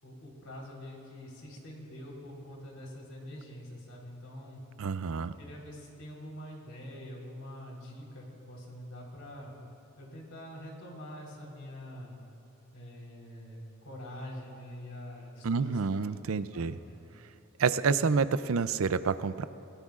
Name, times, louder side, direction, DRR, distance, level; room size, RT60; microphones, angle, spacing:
voice 1, 0.0-4.6 5.4-9.5 10.0-12.1 12.7-16.2 16.5-17.0, left 1 dB, 90° left, -3 dB, 4.1 m, -45 dB
voice 2, 4.8-5.3 15.4-16.8 17.6-19.4, right 5 dB, 70° right, 14 dB, 0.5 m, -28 dB
27.5 x 17.0 x 2.5 m, 2.9 s
head